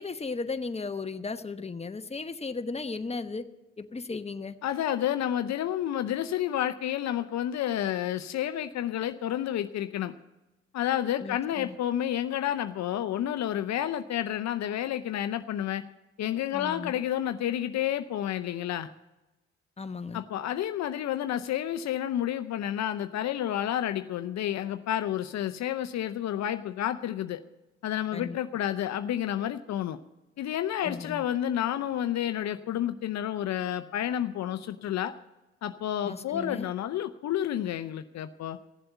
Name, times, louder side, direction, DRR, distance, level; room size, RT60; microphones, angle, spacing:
voice 1, 0.0-3.5 3.8-4.6 11.2-11.7 16.5-17.0 19.8-20.2 28.1-28.4 30.8-31.2 36.0-36.7, left 4 dB, 20° left, 9 dB, 1.0 m, -36 dB
voice 2, 4.6-10.1 10.7-15.8 16.2-18.9 20.1-27.4 27.8-30.0 30.4-35.1 35.6-38.6, left 11 dB, 65° left, 10 dB, 0.7 m, -30 dB
15.5 x 7.7 x 8.0 m, 1.0 s
hypercardioid pair, 45°, 29 cm